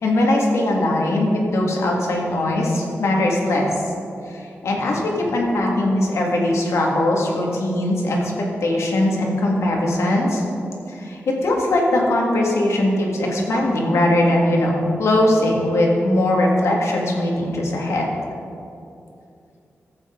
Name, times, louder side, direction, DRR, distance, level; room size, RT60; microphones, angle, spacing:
voice 1, 0.0-3.7 4.3-10.4 10.9-18.1, left 1 dB, 85° left, -1 dB, 1.9 m, -20 dB
14.0 x 8.3 x 3.8 m, 2.6 s
wide cardioid pair, 165°, 5 cm